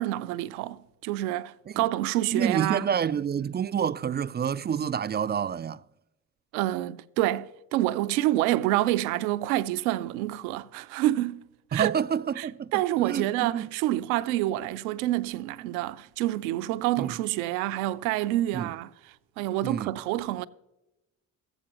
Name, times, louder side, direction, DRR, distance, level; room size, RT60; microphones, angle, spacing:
voice 1, 0.0-2.9 6.5-11.5 11.7-12.0 12.4-18.9 19.4-20.5, right 15 dB, 90° right, 0.6 m, -27 dB
voice 2, 2.3-5.8 11.7-13.7 17.0-17.2 18.5-18.7 19.6-19.9, right 8 dB, 25° right, 0.3 m, -28 dB
15.5 x 14.0 x 3.0 m
hypercardioid pair, 55°, 43 cm